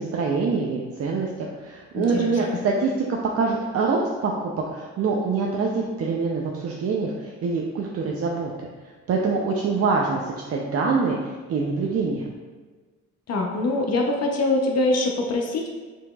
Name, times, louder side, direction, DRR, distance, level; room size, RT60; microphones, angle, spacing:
voice 1, 0.0-4.3 4.7-8.7 9.1-11.2 11.5-12.3, right 4 dB, 50° right, -1 dB, 0.5 m, -25 dB
voice 2, 1.9-2.3 13.3-15.7, left 2 dB, 55° left, 1 dB, 0.7 m, -23 dB
6.0 x 2.8 x 2.3 m, 1.4 s
cardioid pair, 90°, 30 cm